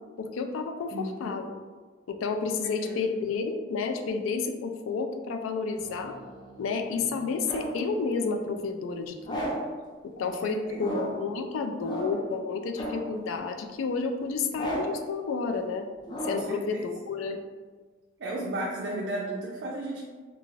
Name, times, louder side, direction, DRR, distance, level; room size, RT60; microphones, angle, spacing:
voice 1, 0.2-1.6 2.1-6.2 6.6-9.6 10.0-15.9 16.2-17.4, left 4 dB, 90° left, 5 dB, 0.3 m, -31 dB
voice 2, 0.9-1.3 2.8-3.1 10.2-11.1 16.3-16.9 18.2-20.0, right 1 dB, 60° right, -3 dB, 0.4 m, -35 dB
sound 1, 5.8-7.9 9.2-9.8 10.7-11.3 11.8-12.3 12.8-13.2 14.5-15.1 16.0-16.6, equal, 25° left, 0.4 m, -35 dB
2.4 x 2.4 x 3.1 m, 1.4 s
head